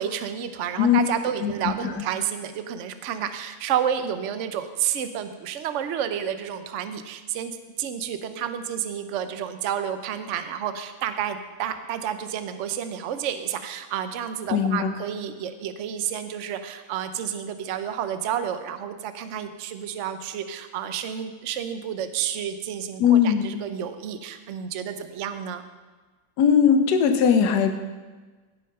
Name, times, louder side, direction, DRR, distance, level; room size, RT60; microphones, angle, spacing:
voice 1, 0.0-25.6, right 9 dB, 65° right, 9 dB, 0.7 m, -30 dB
voice 2, 1.4-1.9 14.5-14.9 23.0-23.5 26.4-27.7, left 8 dB, 65° left, 7 dB, 1.4 m, -19 dB
16.5 x 5.6 x 5.4 m, 1.3 s
omnidirectional pair, 2.1 m